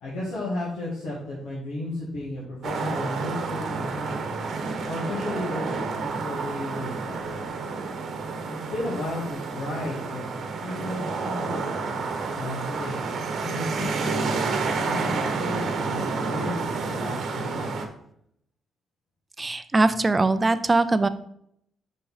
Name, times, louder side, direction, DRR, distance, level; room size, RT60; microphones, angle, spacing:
voice 1, 0.0-7.4 8.5-10.3 10.6-12.0 12.3-13.0 13.4-17.7, left 1 dB, 90° left, -8 dB, 2.2 m, -34 dB
sound 1, 2.6-17.8, right 4 dB, 65° right, 1.0 m, -30 dB
voice 2, 19.4-21.1, right 2 dB, 25° right, 12 dB, 0.5 m, -21 dB
5.5 x 5.2 x 4.1 m, 0.71 s
cardioid pair, 90°, 0 cm